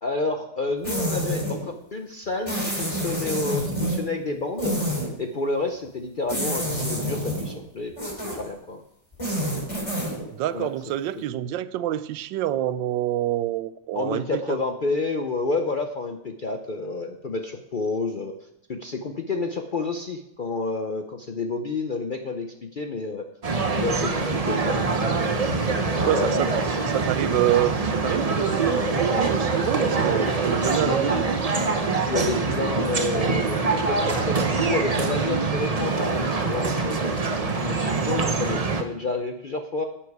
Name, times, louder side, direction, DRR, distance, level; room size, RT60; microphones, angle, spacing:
voice 1, 0.0-7.9 8.2-8.8 9.4-9.7 10.5-10.7 11.2-11.3 13.9-18.3 18.7-23.2 23.8-24.8 26.0-26.4 30.8-31.1 32.1-39.8, left 3 dB, 75° left, 5 dB, 0.4 m, -30 dB
sound 1, 0.8-1.6 2.5-4.0 4.6-5.1 6.3-7.5 8.0-8.5 9.1-10.2, equal, 15° left, 3.2 m, -27 dB
voice 2, 10.3-14.6 25.3-25.5 25.9-26.5 26.8-31.3, right 13 dB, 85° right, 16 dB, 1.3 m, -27 dB
sound 2, 23.4-38.8, right 4 dB, 35° right, 0.6 m, -24 dB
11.5 x 8.9 x 4.8 m, 0.81 s
omnidirectional pair, 2.0 m